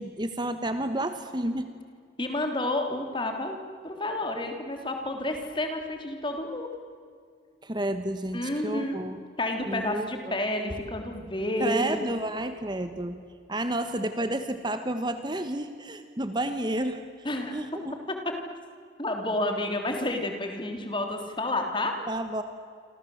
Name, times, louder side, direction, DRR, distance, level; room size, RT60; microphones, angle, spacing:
voice 1, 0.0-1.7 7.6-9.2 9.6-10.4 11.6-13.2 13.5-17.0 17.5-18.0 22.1-22.4, right 1 dB, 25° right, 9 dB, 1.2 m, -31 dB
voice 2, 2.2-3.6 3.8-6.7 8.3-9.0 9.4-12.1 17.3-17.6 19.0-22.0, left 1 dB, 25° left, 4 dB, 3.5 m, -30 dB
28.0 x 26.0 x 8.0 m, 2.2 s
head